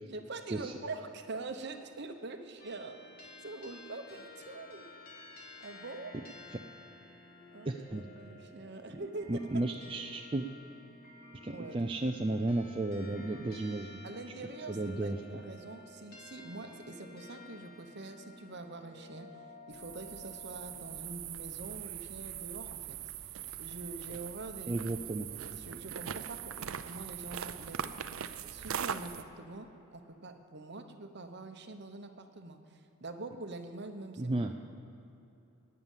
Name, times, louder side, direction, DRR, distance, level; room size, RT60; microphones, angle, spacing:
voice 1, 0.1-3.0 3.4-4.9 5.6-6.1 7.5-9.6 11.5-11.8 14.0-19.3 19.7-23.0 23.2-24.8 25.3-27.9 28.4-34.5, right 2 dB, 50° right, 7 dB, 0.9 m, -45 dB
sound 1, 2.6-21.0, left 2 dB, 45° left, 1.9 m, -52 dB
voice 2, 7.7-8.0 9.3-10.5 11.4-14.0 14.7-15.2 24.7-25.3 34.2-34.5, right 2 dB, 25° right, 3 dB, 0.4 m, -33 dB
sound 2, 19.7-29.2, right 9 dB, 75° right, 0.5 m, -41 dB
12.5 x 9.6 x 7.3 m, 2.9 s
head